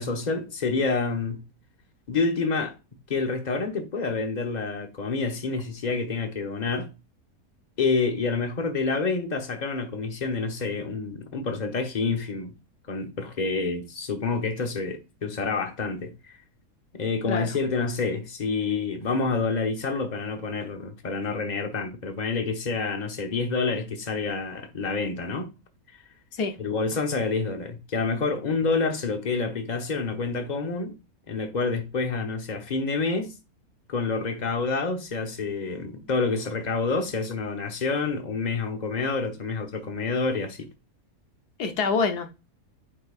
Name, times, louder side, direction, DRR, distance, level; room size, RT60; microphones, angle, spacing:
voice 1, 0.0-1.4 2.1-2.8 3.1-6.9 7.8-12.5 12.9-16.4 16.9-25.5 26.6-31.0 31.3-33.4 33.9-40.7, left 4 dB, 30° left, 1.0 m, -28 dB
voice 2, 41.6-42.3, left 5 dB, 85° left, 1.5 m, -26 dB
9.0 x 4.6 x 2.4 m
omnidirectional pair, 1.6 m